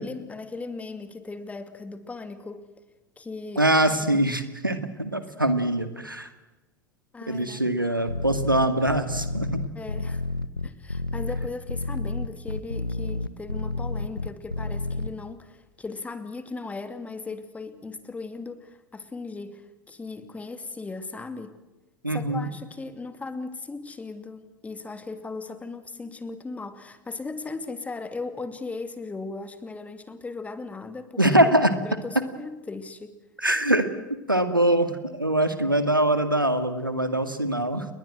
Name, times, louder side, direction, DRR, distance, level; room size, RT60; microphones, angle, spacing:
voice 1, 0.0-2.7 3.2-4.2 7.1-7.7 9.7-10.2 10.6-21.5 22.1-31.2 31.8-33.2, left 3 dB, 15° left, 11 dB, 2.7 m, -37 dB
voice 2, 3.6-6.3 7.3-9.6 22.0-22.5 31.2-31.7 33.4-33.9 34.3-37.9, right 1 dB, 90° right, 10 dB, 2.2 m, -23 dB
sound 1, 8.1-15.1, left 2 dB, 85° left, 1.2 m, -30 dB
30.0 x 21.5 x 7.9 m, 1.0 s
figure-of-eight pair, 85°, 11 cm